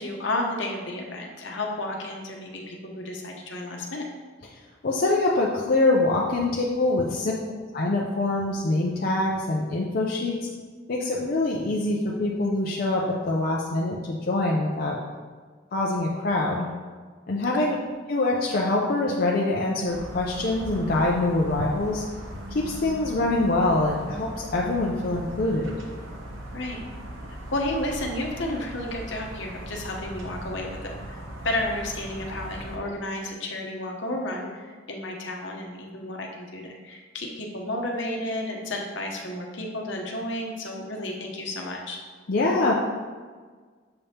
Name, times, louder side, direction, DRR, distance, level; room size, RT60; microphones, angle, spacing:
voice 1, 0.0-4.1 6.3-6.4 7.3-7.4 17.5-17.8 26.5-26.9 27.5-31.2 31.4-42.0, left 1 dB, 70° left, 1 dB, 1.0 m, -32 dB
voice 2, 4.8-7.3 7.7-10.4 10.9-15.0 15.7-16.7 17.3-17.8 18.1-22.0 22.5-25.7 42.3-42.7, left 2 dB, 50° left, -3 dB, 0.6 m, -24 dB
sound 1, 19.8-32.8, right 1 dB, 90° right, 0.9 m, -39 dB
6.8 x 5.2 x 2.9 m, 1.5 s
head